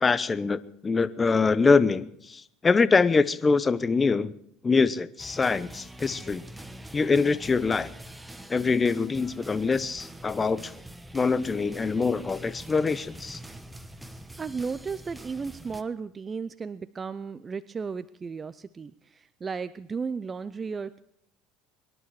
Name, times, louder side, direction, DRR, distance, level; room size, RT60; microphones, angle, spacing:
voice 1, 0.0-4.3 4.6-6.4 6.9-7.9 8.5-10.7 11.1-13.4, left 4 dB, 20° left, 17 dB, 0.8 m, -24 dB
sound 1, 5.2-15.8, right 1 dB, 5° right, 1.1 m, -44 dB
voice 2, 14.4-21.0, right 5 dB, 25° right, 14 dB, 0.5 m, -34 dB
24.0 x 11.0 x 4.8 m, 0.73 s
supercardioid pair, 120°, 0 cm